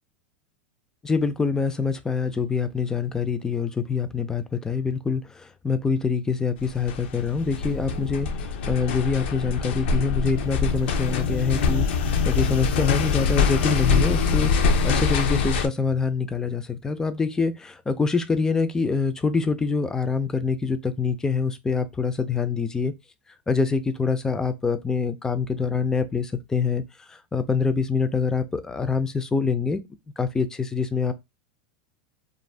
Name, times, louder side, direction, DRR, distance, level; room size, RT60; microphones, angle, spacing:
voice 1, 1.0-22.9 23.5-26.8 27.1-29.8 30.2-31.1, left 5 dB, 10° left, 0.3 m, -25 dB
sound 1, 6.6-15.7, left 5 dB, 70° left, 0.5 m, -24 dB
2.5 x 2.0 x 3.2 m
supercardioid pair, 135°, 6 cm